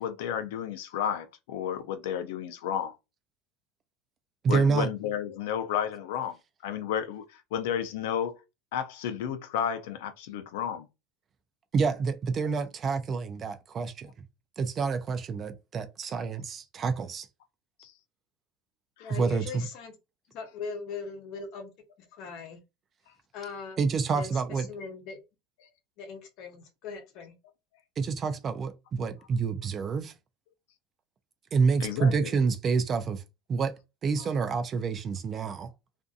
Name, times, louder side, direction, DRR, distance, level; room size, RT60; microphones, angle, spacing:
voice 1, 0.0-3.0 4.5-6.4 6.6-8.4 8.7-10.9 17.8-17.9 19.0-19.2 25.6-25.7 31.8-32.3, left 9 dB, 80° left, 0.5 m, -32 dB
voice 2, 4.4-4.9 11.7-14.1 14.6-17.3 19.1-19.7 23.8-24.7 28.0-30.1 31.5-33.2 33.5-33.7 34.0-35.7, right 5 dB, 25° right, 0.4 m, -28 dB
voice 3, 19.0-19.9 20.3-21.7 22.2-22.6 23.3-23.9 24.1-25.2 26.0-27.3, left 5 dB, 50° left, 0.8 m, -40 dB
2.5 x 2.5 x 2.4 m
supercardioid pair, 155°, 0 cm